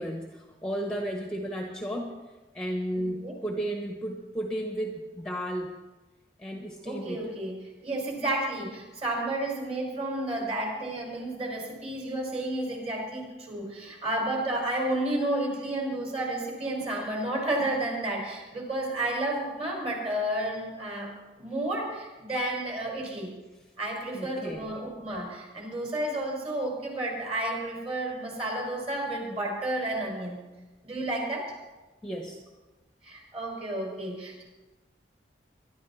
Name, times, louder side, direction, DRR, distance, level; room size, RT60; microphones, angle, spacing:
voice 1, 0.0-5.7 6.4-7.3 24.1-24.8 32.0-32.4, equal, 5° left, 1 dB, 1.2 m, -34 dB
voice 2, 2.9-3.3 6.9-7.6 7.8-21.1 21.4-23.3 23.8-30.4 30.8-31.5 33.0-34.4, right 1 dB, 35° right, -1 dB, 5.3 m, -31 dB
23.5 x 12.0 x 4.2 m, 1.2 s
head